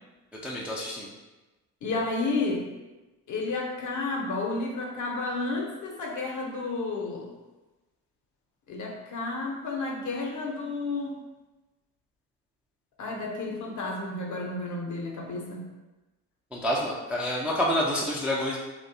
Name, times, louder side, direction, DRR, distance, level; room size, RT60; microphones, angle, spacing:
voice 1, 0.4-1.1 16.5-18.6, equal, 5° right, -4 dB, 0.4 m, -28 dB
voice 2, 1.8-2.7 3.3-7.3 8.7-11.2 13.0-15.7, left 3 dB, 45° left, 0 dB, 0.6 m, -31 dB
2.6 x 2.2 x 2.5 m, 1.1 s
hypercardioid pair, 50°, 44 cm